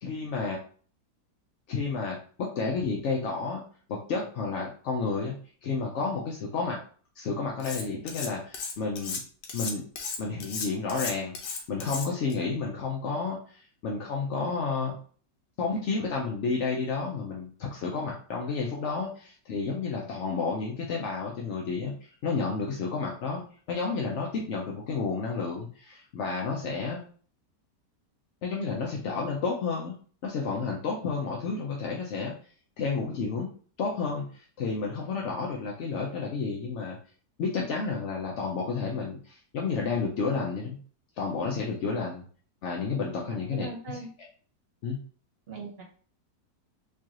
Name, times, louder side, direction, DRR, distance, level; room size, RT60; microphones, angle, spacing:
voice 1, 0.0-0.6 1.7-3.6 3.9-6.8 7.2-9.2 9.5-9.8 10.2-15.0 15.6-23.4 23.7-27.0 28.4-29.9 30.2-32.3 32.8-33.5 33.8-37.0 37.4-40.8 41.2-42.2 42.6-43.7 44.8-45.0, left 4 dB, 65° left, -1 dB, 0.7 m, -31 dB
Cutlery silverware, 7.6-8.3 8.5-12.3, left 5 dB, 85° left, 1.4 m, -35 dB
voice 2, 43.2-44.1 45.5-45.8, right 2 dB, 40° right, -2 dB, 1.0 m, -40 dB
4.6 x 2.4 x 2.9 m, 0.43 s
omnidirectional pair, 1.8 m